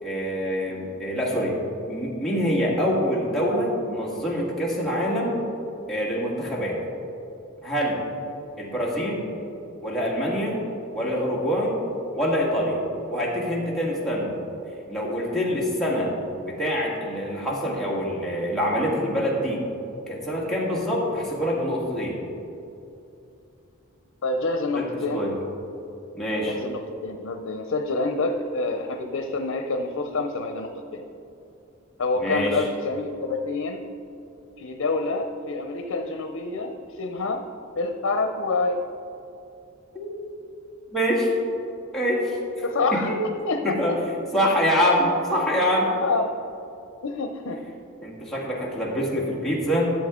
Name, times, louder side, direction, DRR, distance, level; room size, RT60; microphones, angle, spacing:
voice 1, 0.0-1.6 1.9-5.4 5.9-6.8 7.6-8.0 8.6-9.3 9.8-10.6 10.9-11.8 12.1-12.8 13.1-14.3 14.9-16.1 16.4-19.6 20.1-22.2 24.7-24.9 25.1-25.3 26.1-26.5 32.2-32.6 39.9-40.1 40.9-41.3 41.9-42.6 42.9-43.2 43.6-44.0 44.3-45.9 48.0-49.9, equal, ahead, -6 dB, 1.6 m, -25 dB
voice 2, 24.2-25.3 26.5-31.0 32.0-33.8 34.6-37.4 37.8-38.8 42.6-43.1 43.4-44.0 46.0-46.3 47.0-47.6, left 3 dB, 85° left, 6 dB, 0.6 m, -27 dB
12.0 x 7.4 x 3.7 m, 2.7 s
head